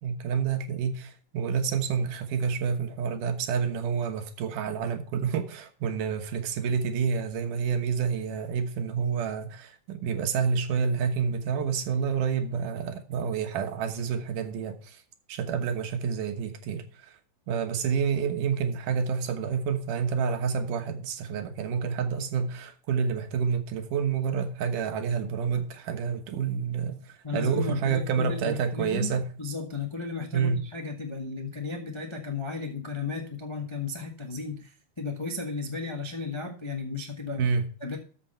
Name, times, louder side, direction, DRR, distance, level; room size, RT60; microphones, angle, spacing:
voice 1, 0.0-15.0 15.3-17.1 17.5-29.3 30.3-30.6 37.4-37.6, right 6 dB, 80° right, 2.8 m, -28 dB
voice 2, 27.2-37.5 37.8-38.0, left 4 dB, 30° left, 0.5 m, -34 dB
13.5 x 6.3 x 4.3 m
omnidirectional pair, 3.6 m